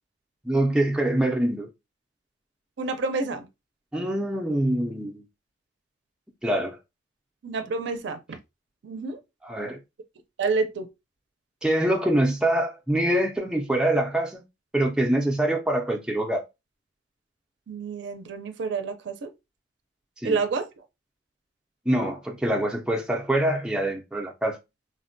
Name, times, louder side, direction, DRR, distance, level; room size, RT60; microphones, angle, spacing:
voice 1, 0.4-1.7 3.9-5.2 6.4-6.8 9.4-9.8 11.6-14.4 14.7-16.4 20.2-20.4 21.9-24.6, right 1 dB, 5° right, 0.3 m, -24 dB
voice 2, 2.8-3.5 7.4-8.4 8.8-9.2 10.4-10.9 17.7-19.3 20.2-20.7, right 4 dB, 70° right, 0.4 m, -28 dB
3.3 x 2.1 x 2.5 m
head